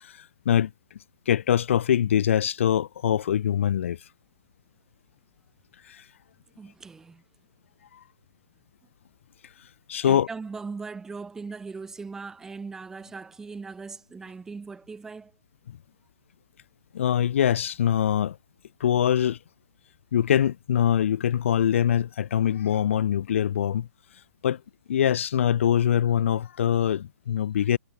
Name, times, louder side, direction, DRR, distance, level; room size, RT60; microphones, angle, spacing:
voice 1, 1.3-4.0 9.9-10.3 16.9-18.3 18.8-19.4 20.1-23.8 24.4-24.6 24.9-27.8, left 9 dB, 55° left, 0.6 m, -23 dB
voice 2, 6.6-7.2 10.0-15.3, right 4 dB, 5° right, 1.4 m, -39 dB
hypercardioid pair, 160°, 8 cm